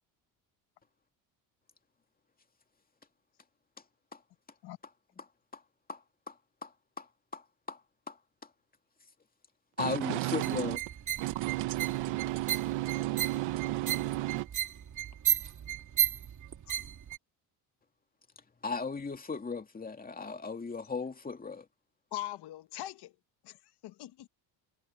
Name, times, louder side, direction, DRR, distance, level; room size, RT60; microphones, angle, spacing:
voice 1, 5.9-6.4 6.6-6.7 7.0-7.1 7.3-7.8 8.1-8.2 9.8-10.8 18.6-21.7, left 4 dB, 20° left, 2.4 m, -37 dB
voice 2, 9.8-10.8 11.2-14.5, right 18 dB, 80° right, 1.6 m, -33 dB
sound 1, 10.4-17.2, right 9 dB, 45° right, 2.7 m, -34 dB
voice 3, 22.1-23.1 23.4-24.3, left 14 dB, 70° left, 1.6 m, -41 dB
cardioid pair, 105°, 42 cm